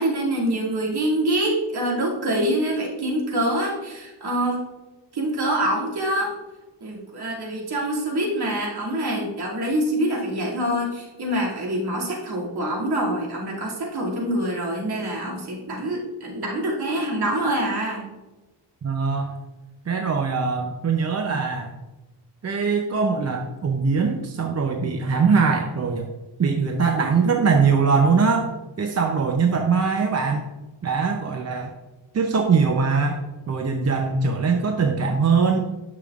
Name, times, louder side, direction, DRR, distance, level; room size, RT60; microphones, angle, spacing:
voice 1, 0.0-4.6 5.1-6.3 6.8-18.0, right 1 dB, 60° right, -3 dB, 2.5 m, -25 dB
voice 2, 18.8-19.3 19.9-21.8 22.4-26.1 26.4-28.5 28.8-30.4 30.8-31.7 32.1-35.6, right 5 dB, 35° right, 3 dB, 0.6 m, -22 dB
10.5 x 6.8 x 2.4 m, 1.1 s
wide cardioid pair, 130°, 44 cm